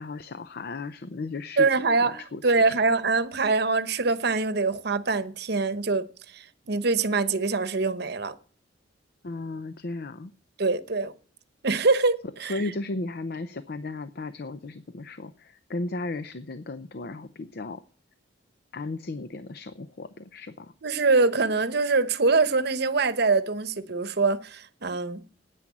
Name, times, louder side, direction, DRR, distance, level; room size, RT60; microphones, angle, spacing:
voice 1, 0.0-1.7 2.0-2.7 9.2-10.3 12.5-17.8 18.7-20.7, left 3 dB, 55° left, 0.6 m, -35 dB
voice 2, 1.6-6.1 6.3-8.3 10.6-11.1 11.6-12.7 20.8-25.2, right 3 dB, 60° right, 0.9 m, -24 dB
10.0 x 9.2 x 7.2 m
head